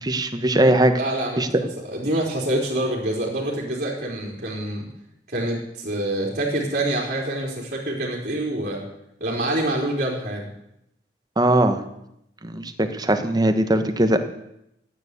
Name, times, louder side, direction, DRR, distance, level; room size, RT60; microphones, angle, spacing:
voice 1, 0.0-0.9 1.4-1.5 11.4-11.8 12.4-14.2, right 1 dB, 20° right, 7 dB, 1.3 m, -20 dB
voice 2, 0.9-1.4 1.8-4.9 5.3-8.8 9.2-10.5, right 1 dB, 45° right, -4 dB, 4.0 m, -26 dB
15.0 x 9.7 x 8.4 m, 0.81 s
head